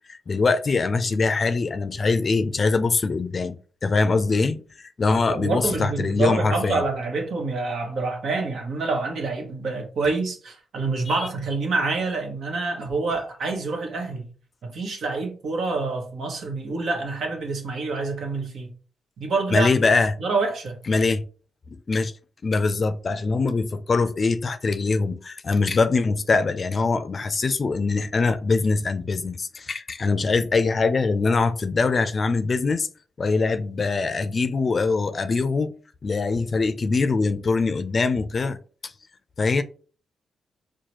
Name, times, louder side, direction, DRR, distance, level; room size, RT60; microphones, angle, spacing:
voice 1, 0.1-3.6 3.8-6.8 19.5-20.1 20.9-21.2 21.7-22.1 22.4-32.9 33.2-35.7 36.0-38.6 38.8-38.9 39.4-39.6, left 4 dB, 50° left, 0.4 m, -23 dB
voice 2, 5.3-14.3 14.6-18.7 19.2-19.7 20.2-20.8, right 3 dB, 70° right, 1.0 m, -27 dB
4.7 x 2.2 x 2.9 m
supercardioid pair, 45°, 0 cm